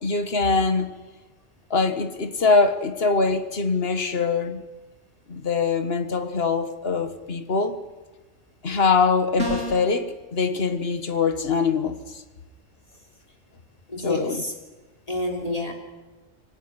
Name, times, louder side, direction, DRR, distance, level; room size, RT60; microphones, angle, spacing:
voice 1, 0.0-0.9 1.7-4.6 5.3-7.8 8.6-12.2 14.0-14.4, left 4 dB, 50° left, 1.8 m, -23 dB
sound 1, 9.4-9.9, right 1 dB, 75° right, 5.3 m, -28 dB
voice 2, 13.9-14.6 15.1-15.7, left 1 dB, 30° left, 3.6 m, -28 dB
24.5 x 18.5 x 9.9 m
omnidirectional pair, 1.3 m